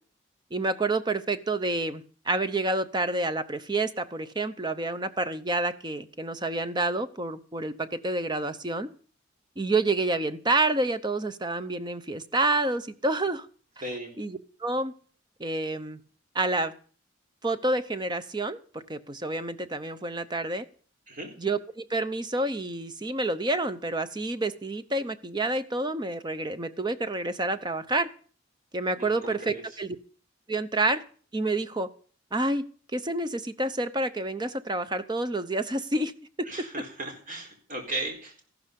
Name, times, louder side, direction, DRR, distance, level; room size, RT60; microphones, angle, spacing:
voice 1, 0.5-8.9 9.6-13.5 14.2-14.9 15.4-16.0 16.3-16.7 17.4-20.7 21.4-28.1 28.7-30.0 30.5-31.0 31.3-31.9 32.3-32.6 32.9-36.1 36.4-36.5, right 2 dB, 20° right, 12 dB, 0.7 m, -28 dB
voice 2, 13.8-14.1 21.1-21.3 29.0-29.6 36.5-38.4, right 1 dB, 40° right, 3 dB, 4.1 m, -36 dB
14.5 x 12.5 x 5.3 m, 0.42 s
head